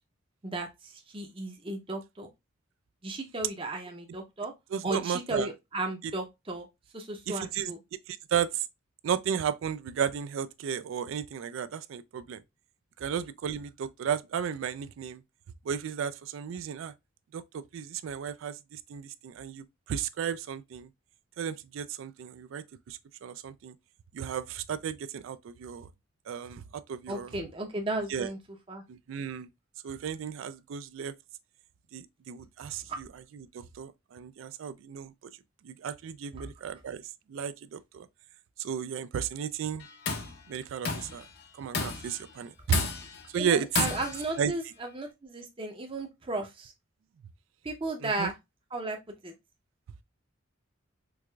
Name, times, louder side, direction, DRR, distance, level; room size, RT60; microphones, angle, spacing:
voice 1, 1.1-2.3 3.0-4.5 4.8-6.7 6.9-7.8 27.1-28.4 28.7-28.8 36.4-36.5 43.3-44.6 44.9-46.7 47.6-48.3 48.7-49.0 49.2-49.3, right 2 dB, 25° right, 0.6 m, -34 dB
voice 2, 4.7-5.5 6.0-6.1 7.3-8.7 9.0-12.4 13.0-15.2 15.6-16.9 17.3-20.9 21.4-23.7 24.1-25.9 26.3-27.4 28.1-28.3 28.9-29.5 29.8-31.1 31.9-35.1 35.6-37.0 37.3-38.1 38.6-39.9 40.5-41.3 41.5-42.9 43.3-43.9 44.4-44.7 48.0-48.3, right 7 dB, 70° right, 0.3 m, -34 dB
Tools, 39.8-40.4 40.8-41.2 41.7-42.2 42.7-43.2 43.8-44.3, left 5 dB, 50° left, 0.6 m, -31 dB
4.6 x 2.4 x 2.2 m
head